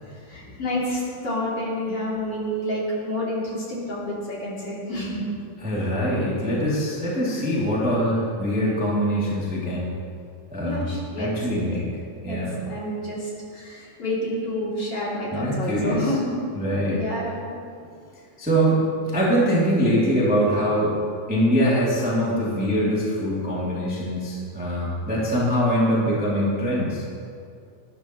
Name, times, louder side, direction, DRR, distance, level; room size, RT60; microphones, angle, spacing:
voice 1, 0.0-5.2 10.6-11.6 12.3-16.2 16.9-17.4, left 1 dB, 45° left, -6 dB, 3.8 m, -29 dB
voice 2, 5.6-9.9 10.5-10.9 11.2-11.9 12.2-12.6 15.3-16.1 16.5-17.0 18.4-21.0 21.3-27.0, equal, 5° right, -7 dB, 2.1 m, -23 dB
19.5 x 12.5 x 3.1 m, 2.3 s
omnidirectional pair, 3.8 m